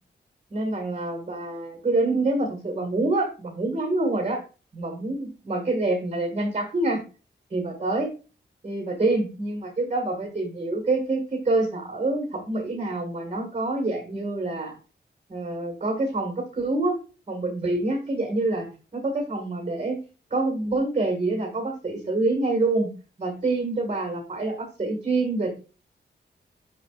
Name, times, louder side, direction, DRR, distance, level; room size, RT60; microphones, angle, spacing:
voice 1, 0.5-4.4 4.7-7.0 7.5-8.1 8.6-14.7 15.3-17.0 17.3-20.0 20.3-22.9 23.2-25.6, right 2 dB, 35° right, 1 dB, 1.8 m, -26 dB
9.7 x 6.0 x 2.4 m, 0.33 s
wide cardioid pair, 160°, 18 cm